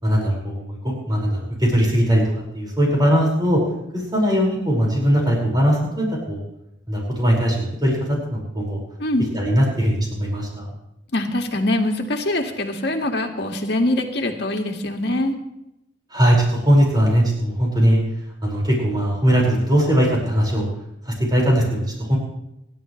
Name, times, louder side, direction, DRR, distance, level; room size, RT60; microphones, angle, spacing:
voice 1, 0.0-2.2 2.5-3.6 3.9-6.4 6.9-8.8 9.3-10.7 16.1-18.0 18.4-20.7 21.0-22.2, equal, 25° right, -3 dB, 5.2 m, -20 dB
voice 2, 9.0-9.3 11.1-15.3, left 1 dB, 65° left, 3 dB, 2.0 m, -23 dB
26.5 x 12.0 x 3.2 m, 0.84 s
head